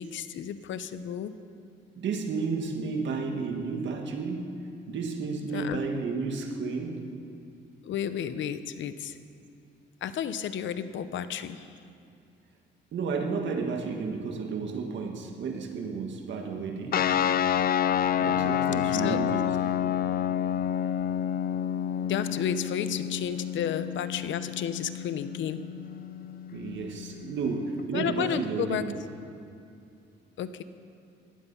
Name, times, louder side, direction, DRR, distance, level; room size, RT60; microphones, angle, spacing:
voice 1, 0.0-1.4 5.5-5.8 7.8-9.2 10.0-11.7 18.9-19.2 22.0-25.6 27.9-28.9 30.4-30.6, left 9 dB, 70° left, 12 dB, 0.8 m, -32 dB
voice 2, 2.0-4.5 4.9-7.1 12.9-17.0 18.2-19.4 26.5-29.0, right 4 dB, 65° right, 3 dB, 1.9 m, -32 dB
sound 1, 16.9-27.8, left 9 dB, 50° left, 0.5 m, -29 dB
17.5 x 12.0 x 5.6 m, 2.5 s
cardioid pair, 90°, 20 cm